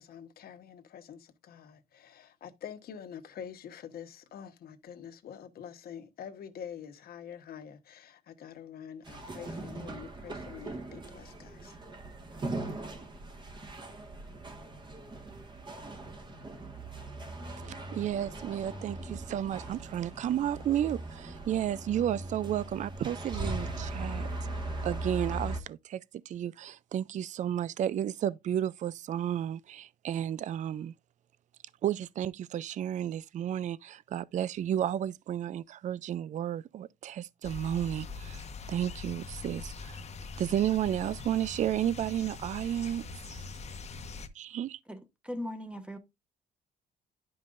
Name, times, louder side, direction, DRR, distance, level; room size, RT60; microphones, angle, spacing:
voice 1, 0.0-11.8, left 8 dB, 60° left, 1.2 m, -46 dB
sound 1, 9.0-25.6, right 2 dB, 25° right, 1.6 m, -39 dB
voice 2, 17.6-24.3 24.8-30.9 31.8-40.0 40.4-43.0 44.4-44.7, right 10 dB, 45° right, 0.4 m, -32 dB
sound 2, 37.4-44.3, left 4 dB, 40° left, 1.0 m, -43 dB
voice 3, 45.2-46.0, left 1 dB, 5° right, 1.4 m, -37 dB
11.5 x 5.5 x 2.5 m
cardioid pair, 120°, 17 cm